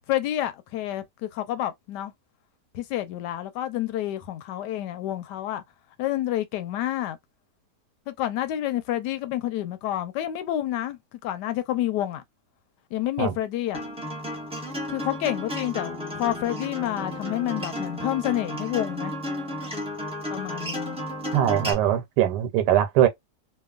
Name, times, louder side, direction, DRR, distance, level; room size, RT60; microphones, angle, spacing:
voice 1, 0.1-2.1 2.7-5.6 6.0-7.2 8.1-12.2 12.9-13.8 14.9-19.1 20.3-21.0, left 13 dB, 85° left, 1.2 m, -29 dB
Acoustic guitar, 13.7-21.7, left 1 dB, 10° right, 0.3 m, -33 dB
voice 2, 21.3-23.1, right 11 dB, 85° right, 1.2 m, -21 dB
2.9 x 2.3 x 2.3 m
omnidirectional pair, 1.8 m